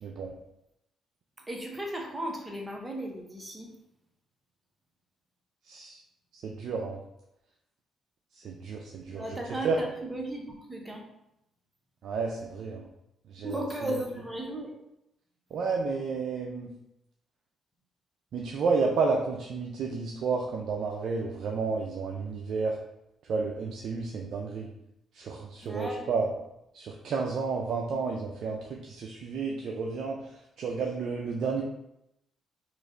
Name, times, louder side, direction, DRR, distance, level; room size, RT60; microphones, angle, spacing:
voice 1, 0.0-0.3 5.7-6.0 6.3-7.0 8.3-9.3 9.6-9.8 12.0-12.9 13.3-13.6 15.5-16.7 18.3-22.8 23.2-24.7 25.1-26.3 26.7-31.6, right 4 dB, 65° right, 0 dB, 0.4 m, -31 dB
voice 2, 1.5-3.7 9.1-11.0 13.4-14.7 25.6-26.3, right 1 dB, 10° right, -1 dB, 0.9 m, -36 dB
3.1 x 2.5 x 3.7 m, 0.84 s
cardioid pair, 90°, 0 cm